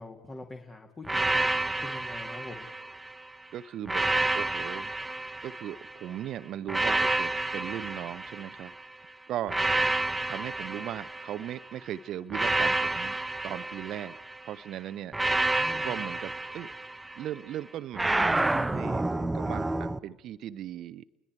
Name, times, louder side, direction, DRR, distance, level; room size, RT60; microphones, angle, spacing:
voice 1, 0.0-1.4 1.8-2.7 15.6-16.1, left 2 dB, 25° left, 3 dB, 2.3 m, -44 dB
sound 1, 1.0-3.2 3.8-6.0 6.7-8.8 9.5-11.6 12.3-14.5 15.1-17.3 17.9-20.0, right 2 dB, 10° right, 0.7 m, -29 dB
voice 2, 3.5-4.1 4.3-4.9 5.4-8.7 9.3-9.6 10.3-13.2 13.4-14.2 14.4-15.1 15.7-16.7 17.1-21.0, right 11 dB, 55° right, 15 dB, 0.6 m, -38 dB
29.5 x 21.0 x 4.6 m, 1.2 s
figure-of-eight pair, 60°, 0 cm